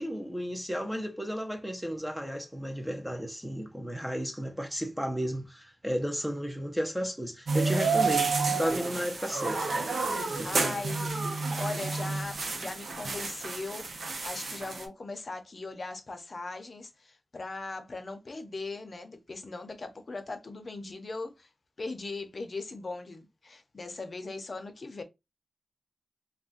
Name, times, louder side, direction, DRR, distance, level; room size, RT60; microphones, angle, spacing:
voice 1, 0.0-9.7 10.3-10.5, equal, 5° right, 0.5 m, -33 dB
sound 1, 7.5-14.8, right 4 dB, 75° right, 0.6 m, -30 dB
voice 2, 10.4-11.2 11.5-13.9 14.2-21.5 21.8-25.0, left 3 dB, 45° left, 0.6 m, -39 dB
2.5 x 2.1 x 3.7 m
wide cardioid pair, 130°, 0 cm